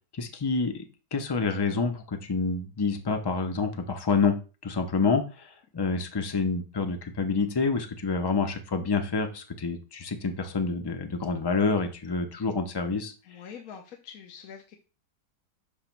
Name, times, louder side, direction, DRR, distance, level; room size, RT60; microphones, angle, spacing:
voice 1, 0.1-4.4 4.6-13.1, left 4 dB, 40° left, 7 dB, 0.3 m, -28 dB
voice 2, 13.2-14.8, left 7 dB, 65° left, 4 dB, 1.2 m, -45 dB
6.6 x 3.0 x 5.9 m, 0.33 s
omnidirectional pair, 1.7 m